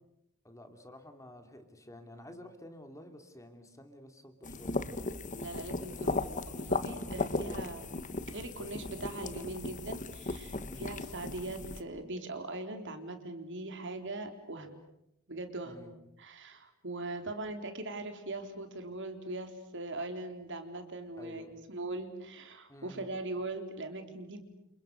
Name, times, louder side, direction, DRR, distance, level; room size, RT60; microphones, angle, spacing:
voice 1, 0.4-4.8 10.6-10.9 15.6-15.9 21.2-21.6 22.7-23.1, left 1 dB, 15° left, 6 dB, 2.9 m, -51 dB
sound 1, 4.4-11.8, left 3 dB, 35° left, 1.5 m, -36 dB
voice 2, 5.3-8.0 8.3-14.8 15.3-15.9 16.2-24.4, right 2 dB, 55° right, 6 dB, 3.9 m, -41 dB
30.0 x 28.5 x 6.6 m, 0.83 s
head